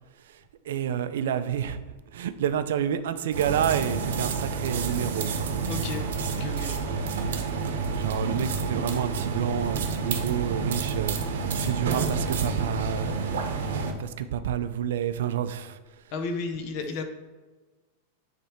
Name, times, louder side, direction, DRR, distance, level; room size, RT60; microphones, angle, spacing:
voice 1, 0.7-1.8 2.1-5.5 8.0-13.4 13.7-15.8, right 9 dB, 70° right, 11 dB, 0.5 m, -29 dB
sound 1, 3.3-13.9, right 4 dB, 85° right, 1.0 m, -29 dB
voice 2, 5.7-6.1 6.4-6.9 16.1-17.0, left 4 dB, 35° left, 6 dB, 0.6 m, -33 dB
9.9 x 3.4 x 4.4 m, 1.3 s
supercardioid pair, 180°, 0 cm